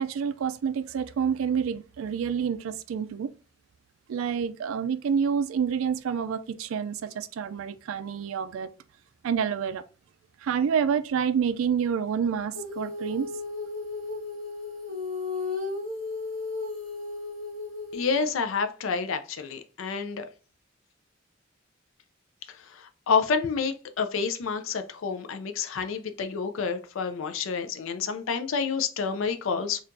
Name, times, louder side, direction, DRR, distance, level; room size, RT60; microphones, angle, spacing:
voice 1, 0.0-3.3 4.1-8.7 9.2-9.8 10.4-13.3, right 7 dB, 75° right, 0.3 m, -28 dB
Female singing, 12.5-18.3, left 3 dB, 45° right, 1.9 m, -34 dB
voice 2, 17.9-20.3 22.5-29.8, left 5 dB, 70° left, 0.4 m, -29 dB
4.4 x 2.4 x 2.5 m
head